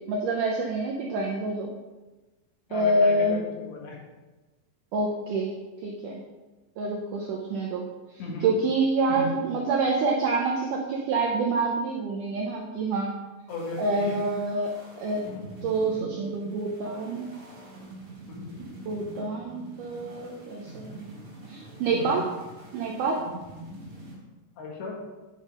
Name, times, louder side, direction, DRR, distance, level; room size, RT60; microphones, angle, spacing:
voice 1, 0.0-1.7 2.7-3.4 4.9-5.5 5.8-6.2 6.8-7.8 8.4-13.2 13.8-15.2 15.6-17.3 18.6-21.0 21.5-22.3 22.7-23.2, right 2 dB, 80° right, -1 dB, 1.8 m, -27 dB
voice 2, 2.7-4.0 8.2-8.5 9.1-9.3 13.5-14.2 15.4-15.5 18.3-18.5 20.1-20.2 21.9-22.2 24.6-25.0, left 2 dB, 90° left, -1 dB, 4.0 m, -36 dB
sound 1, 13.5-24.1, right 1 dB, 35° right, 4.1 m, -45 dB
10.0 x 5.1 x 5.4 m, 1.2 s
omnidirectional pair, 4.8 m